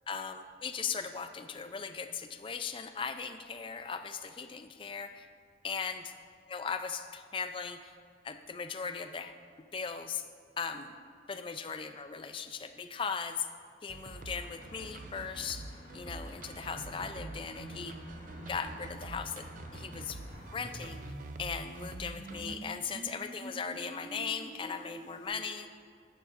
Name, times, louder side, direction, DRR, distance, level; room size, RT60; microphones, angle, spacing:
voice 1, 0.1-5.3 5.6-6.1 6.5-7.9 8.2-9.3 9.7-10.3 10.6-10.9 11.3-13.5 13.8-15.7 15.9-18.0 18.4-19.5 19.7-20.2 20.5-21.0 21.4-25.7, left 6 dB, 25° left, 9 dB, 0.4 m, -38 dB
sound 1, 13.9-22.6, right 3 dB, 45° right, 0.4 m, -47 dB
sound 2, 14.1-20.6, equal, 50° left, 2.3 m, -49 dB
sound 3, 20.3-25.3, right 1 dB, 5° left, 2.1 m, -47 dB
13.0 x 9.4 x 2.5 m, 2.2 s
head